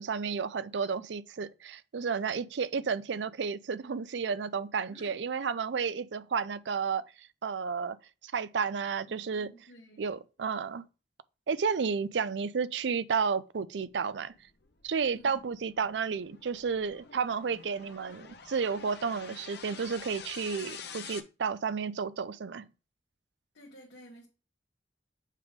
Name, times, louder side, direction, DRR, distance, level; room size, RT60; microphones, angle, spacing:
voice 1, 0.0-8.0 8.2-9.5 10.0-10.8 11.5-14.3 14.8-22.6, right 5 dB, 80° right, 0.5 m, -32 dB
voice 2, 9.1-10.0 15.1-15.5 23.5-24.3, equal, 80° left, 1.7 m, -53 dB
sound 1, 14.2-21.2, left 7 dB, 65° left, 0.8 m, -47 dB
7.4 x 3.7 x 5.0 m
head